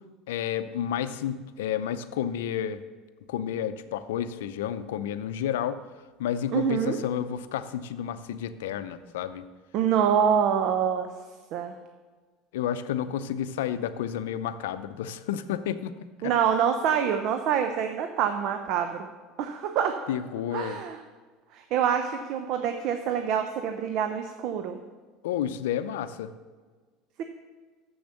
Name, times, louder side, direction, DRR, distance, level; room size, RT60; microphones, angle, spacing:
voice 1, 0.3-2.8 3.3-5.8 6.2-9.5 12.5-15.9 16.2-16.3 20.1-20.8 25.2-26.3, left 9 dB, 85° left, 12 dB, 0.5 m, -31 dB
voice 2, 6.5-7.0 9.7-11.1 11.5-11.8 16.2-19.1 19.4-20.0 20.5-21.0 21.5-24.8 27.2-27.3, right 8 dB, 60° right, 6 dB, 0.7 m, -26 dB
7.1 x 6.9 x 6.6 m, 1.4 s
supercardioid pair, 95°, 0 cm